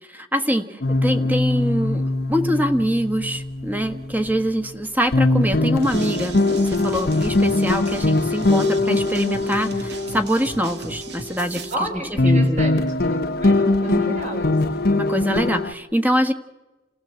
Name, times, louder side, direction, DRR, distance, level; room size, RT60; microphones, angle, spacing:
voice 1, 0.1-11.9 12.2-12.7 13.9-14.3 15.0-16.3, equal, 10° right, 8 dB, 1.4 m, -24 dB
sound 1, 0.8-4.7 5.1-11.9 12.2-15.7, left 2 dB, 60° left, 0.9 m, -22 dB
sound 2, 5.8-11.7, right 3 dB, 65° right, 1.7 m, -37 dB
voice 2, 11.7-12.8 13.4-14.8, right 1 dB, 40° right, 3 dB, 5.3 m, -32 dB
29.5 x 16.0 x 7.8 m, 1.1 s
head